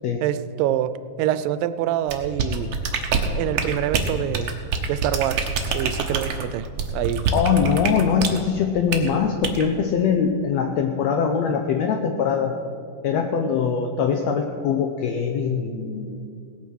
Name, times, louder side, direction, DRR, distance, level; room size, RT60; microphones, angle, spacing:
voice 1, 0.2-0.9 1.2-2.8 3.3-4.6 4.9-7.3, right 12 dB, 85° right, 14 dB, 2.2 m, -26 dB
sound 1, 2.1-8.4 8.9-9.1 9.4-9.6, right 5 dB, 65° right, 1.3 m, -25 dB
voice 2, 7.3-12.5 13.0-16.2, left 6 dB, 80° left, 5 dB, 1.5 m, -22 dB
18.0 x 8.4 x 6.2 m, 2.4 s
omnidirectional pair, 3.9 m